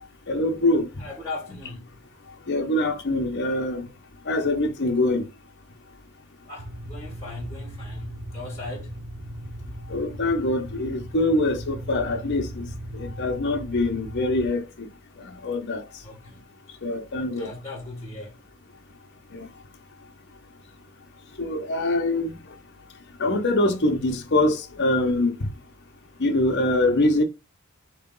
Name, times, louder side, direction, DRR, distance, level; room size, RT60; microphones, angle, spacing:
voice 1, 0.3-0.9 2.5-3.8 4.3-5.2 9.9-12.6 12.9-14.6 15.4-15.8 16.8-17.5 19.3-19.5 21.4-22.3 23.2-25.3 26.2-27.2, left 2 dB, 50° left, 0.9 m, -24 dB
voice 2, 1.0-2.0 6.5-9.0 16.0-16.4 17.3-18.4, left 2 dB, 15° left, 1.3 m, -38 dB
sound 1, 6.6-14.5, equal, 85° right, 0.9 m, -38 dB
3.9 x 3.2 x 3.7 m
head